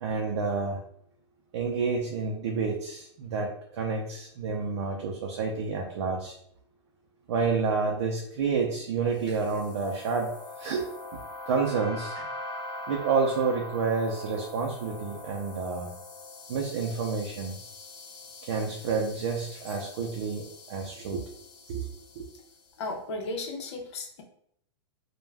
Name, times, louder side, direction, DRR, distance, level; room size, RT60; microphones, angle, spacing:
voice 1, 0.0-0.8 1.5-6.4 7.3-10.3 10.6-10.9 11.1-11.2 11.5-12.3 12.9-15.9 16.5-17.6 18.4-21.2 21.7-21.9 22.2-22.3, right 5 dB, 70° right, 1 dB, 0.5 m, -29 dB
sound 1, 9.2-22.6, left 2 dB, 30° left, 0.7 m, -43 dB
voice 2, 22.8-24.2, left 2 dB, 70° left, 3 dB, 0.6 m, -35 dB
2.2 x 2.2 x 3.2 m, 0.69 s
hypercardioid pair, 145°, 15 cm